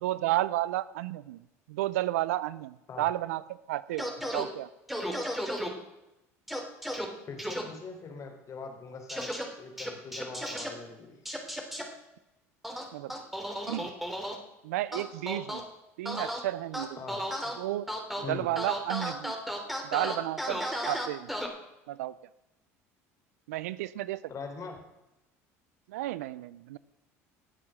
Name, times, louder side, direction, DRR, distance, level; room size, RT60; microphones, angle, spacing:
voice 1, 0.0-3.4 3.7-4.7 12.9-13.2 13.7-13.9 14.6-15.7 16.0-17.0 17.6-17.9 18.3-19.3 19.8-21.3 21.9-22.1 23.5-24.2 25.9-26.8, right 15 dB, 80° right, 18 dB, 0.5 m, -32 dB
sound 1, 4.0-4.4 4.9-5.7 6.5-7.0 7.4-7.6 9.1-9.4 9.8-10.7 11.2-11.8 12.6-14.3 14.9-15.6 16.0-16.4 16.7-17.5 17.9-18.2 18.6-21.5, equal, ahead, 3.2 m, -34 dB
voice 2, 7.3-11.2 17.0-17.2 18.2-18.5 24.3-24.8, left 4 dB, 40° left, 4 dB, 3.8 m, -42 dB
17.5 x 7.5 x 6.4 m, 0.92 s
hypercardioid pair, 70°, 8 cm